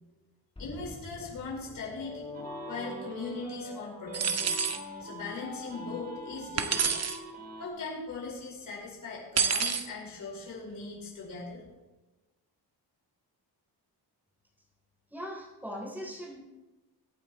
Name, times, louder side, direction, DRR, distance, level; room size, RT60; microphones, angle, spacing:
voice 1, 0.6-2.3 2.7-4.5 5.0-6.9 7.6-11.6, left 3 dB, 55° left, -4 dB, 5.0 m, -39 dB
sound 1, 0.6-5.0, left 2 dB, 15° left, 2.1 m, -46 dB
sound 2, 2.3-3.7 4.1-7.7, right 1 dB, 20° right, 2.6 m, -43 dB
sound 3, 4.1-4.8 6.6-7.2 9.4-9.9, right 6 dB, 40° right, 0.9 m, -28 dB
voice 2, 15.1-16.4, equal, 5° right, -2 dB, 3.6 m, -40 dB
22.5 x 9.1 x 3.1 m, 1.1 s
wide cardioid pair, 175°, 40 cm